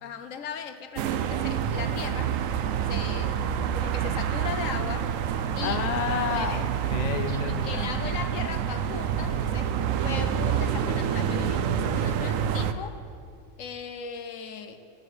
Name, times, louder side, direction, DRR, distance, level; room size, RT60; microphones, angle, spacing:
voice 1, 0.0-2.3 2.9-3.5 3.7-5.1 5.6-5.8 6.3-6.7 7.3-13.0 13.6-14.8, left 7 dB, 85° left, 9 dB, 1.1 m, -38 dB
sound 1, 1.0-12.7, right 8 dB, 85° right, 1.0 m, -27 dB
voice 2, 5.6-8.2, left 7 dB, 45° left, 9 dB, 0.5 m, -31 dB
9.7 x 7.4 x 8.0 m, 2.3 s
omnidirectional pair, 1.3 m